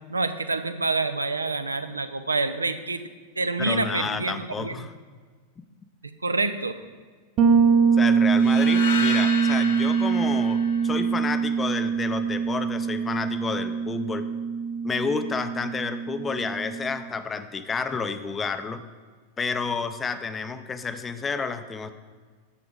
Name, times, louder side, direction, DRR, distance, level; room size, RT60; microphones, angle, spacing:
voice 1, 0.1-3.0 3.4-4.9 6.2-6.8, right 3 dB, 80° right, 10 dB, 0.6 m, -27 dB
voice 2, 3.6-4.9 8.0-14.3 14.8-18.8 19.4-21.9, left 5 dB, 20° left, 10 dB, 0.6 m, -30 dB
Bass guitar, 7.4-17.0, right 6 dB, 40° right, 1.0 m, -23 dB
sound 1, 8.4-11.5, left 4 dB, 60° left, 1.5 m, -33 dB
9.9 x 7.0 x 5.1 m, 1.5 s
figure-of-eight pair, 90°, 0 cm